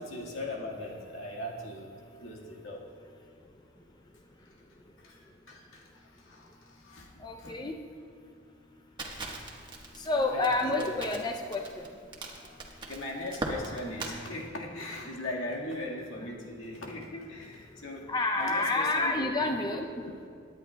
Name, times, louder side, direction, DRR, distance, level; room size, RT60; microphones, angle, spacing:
voice 1, 0.0-1.9 2.2-2.8 5.0-5.2 5.5-7.7 10.3-11.0 12.4-12.5 12.9-20.3, left 1 dB, 80° left, -2 dB, 1.7 m, -39 dB
voice 2, 7.2-7.8 10.0-11.8 18.1-20.0, left 2 dB, 20° left, 3 dB, 0.5 m, -29 dB
Crackle, 9.0-14.1, right 2 dB, 25° right, 1.3 m, -40 dB
23.0 x 10.0 x 2.3 m, 2.3 s
head